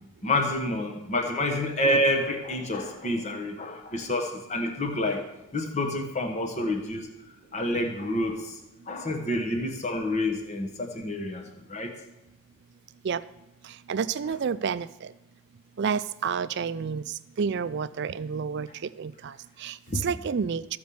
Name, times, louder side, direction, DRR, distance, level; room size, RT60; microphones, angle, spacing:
voice 1, 0.2-5.2 5.5-7.1 7.5-8.5 8.9-11.4 11.7-11.9 19.9-20.0, left 1 dB, 30° left, 3 dB, 1.1 m, -28 dB
voice 2, 13.9-14.9 15.8-20.8, right 6 dB, 50° right, 15 dB, 0.4 m, -30 dB
14.0 x 5.2 x 7.0 m, 0.93 s
head